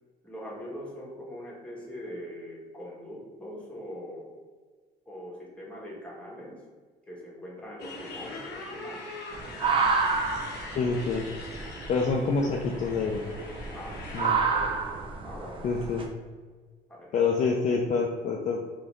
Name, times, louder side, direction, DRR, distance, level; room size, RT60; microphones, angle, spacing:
voice 1, 0.2-4.3 5.1-6.6 7.1-9.0 13.7-14.8 15.2-15.7 16.9-17.1, equal, 5° left, -4 dB, 1.1 m, -42 dB
Motorcycle, 7.8-14.3, left 3 dB, 90° left, 0.8 m, -42 dB
sound 1, 9.3-16.1, right 4 dB, 30° right, 0.5 m, -30 dB
voice 2, 10.7-11.3 11.9-13.2 14.1-14.4 15.6-16.1 17.1-18.6, left 4 dB, 45° left, 0 dB, 0.4 m, -27 dB
3.8 x 2.6 x 3.1 m, 1.5 s
cardioid pair, 110°, 17 cm